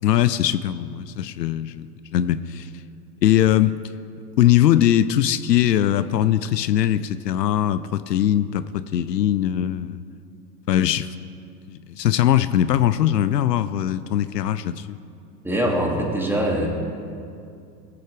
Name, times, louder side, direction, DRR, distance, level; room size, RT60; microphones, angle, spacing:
voice 1, 0.0-2.7 3.2-3.8 4.4-10.0 10.7-11.1 11.7-14.9, left 11 dB, 85° left, 15 dB, 0.6 m, -21 dB
voice 2, 15.4-16.7, right 1 dB, 5° right, -1 dB, 2.1 m, -22 dB
19.0 x 8.6 x 3.3 m, 2.4 s
hypercardioid pair, 100°, 48 cm